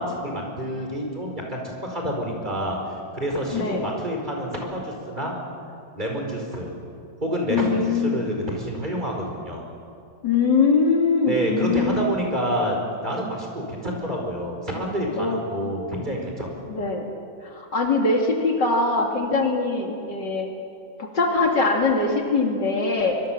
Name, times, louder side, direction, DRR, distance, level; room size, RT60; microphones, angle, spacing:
voice 1, 0.0-2.8 3.1-5.3 5.9-6.7 7.2-9.6 11.3-16.5, equal, 20° right, 0 dB, 5.1 m, -28 dB
voice 2, 3.5-3.9 7.5-8.3 10.2-12.0 15.2-15.4 16.7-17.1 17.5-20.5 21.0-23.2, left 4 dB, 60° left, 1 dB, 3.1 m, -22 dB
25.0 x 23.0 x 7.5 m, 2.5 s
omnidirectional pair, 2.1 m